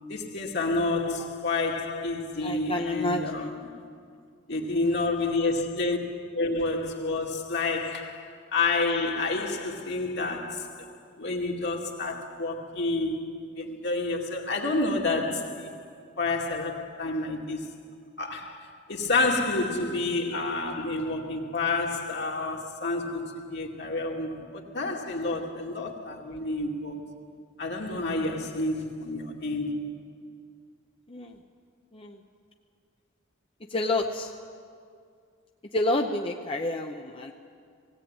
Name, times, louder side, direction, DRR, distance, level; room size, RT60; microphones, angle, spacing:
voice 1, 0.1-3.7 4.5-6.0 6.4-10.9 11.2-15.7 16.2-17.7 18.2-27.1 27.6-29.9, left 3 dB, 60° left, 2.4 m, -29 dB
voice 2, 1.0-1.3 2.4-3.5 25.2-25.3 31.1-31.4 31.9-32.2 33.7-34.3 35.7-37.3, left 2 dB, 30° left, 0.8 m, -29 dB
19.0 x 17.5 x 8.9 m
head